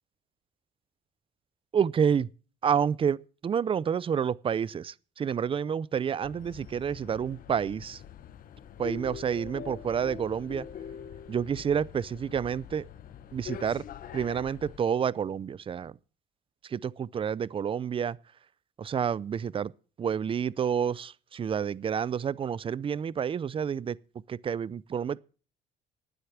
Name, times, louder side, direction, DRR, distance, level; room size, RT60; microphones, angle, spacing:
voice 1, 1.7-2.3 2.6-8.0 8.8-10.7 11.3-12.8 13.3-13.8 14.1-15.9 16.7-18.2 18.8-19.7 20.0-24.0 24.3-25.2, right 7 dB, 30° right, 0.5 m, -29 dB
sound 1, 6.2-14.8, left 8 dB, 55° left, 1.1 m, -44 dB
11.5 x 9.5 x 7.2 m
cardioid pair, 110°, 17 cm